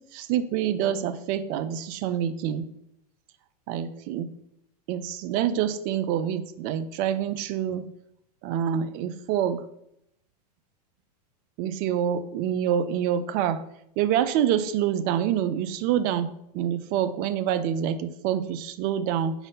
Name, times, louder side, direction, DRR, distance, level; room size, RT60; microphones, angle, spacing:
voice 1, 0.1-2.7 3.7-4.3 4.9-7.8 8.4-9.6 11.6-13.6 14.0-19.3, right 9 dB, 45° right, 12 dB, 0.6 m, -26 dB
5.0 x 4.0 x 5.4 m, 0.77 s
hypercardioid pair, 115°, 21 cm